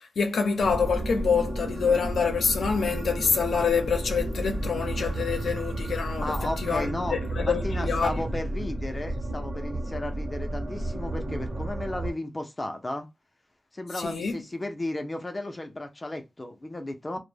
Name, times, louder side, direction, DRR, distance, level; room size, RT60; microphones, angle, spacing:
voice 1, 0.0-8.2 14.0-14.4, left 5 dB, 85° left, 0.5 m, -26 dB
sound 1, 0.6-12.1, right 1 dB, 40° right, 0.6 m, -32 dB
voice 2, 6.2-7.2 7.4-13.1 13.7-17.2, left 1 dB, 20° left, 0.4 m, -34 dB
2.0 x 2.0 x 3.2 m
wide cardioid pair, 135°, 0 cm